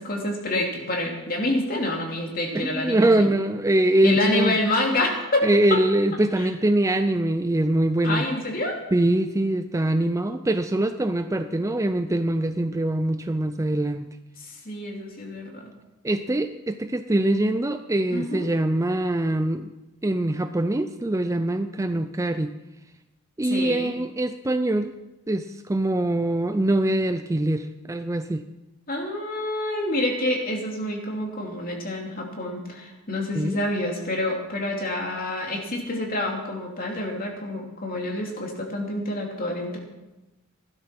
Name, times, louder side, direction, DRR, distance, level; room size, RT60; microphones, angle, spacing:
voice 1, 0.0-3.3 4.0-5.8 6.1-6.5 8.0-8.8 14.4-15.7 18.1-18.5 23.4-23.9 28.9-39.8, left 1 dB, 40° left, 1 dB, 2.8 m, -27 dB
voice 2, 2.5-4.6 5.4-8.3 8.9-14.1 16.0-19.7 20.0-22.5 23.4-24.9 25.3-28.4 33.3-33.6, right 1 dB, 15° right, 9 dB, 0.4 m, -23 dB
16.0 x 12.0 x 6.0 m, 1.0 s
head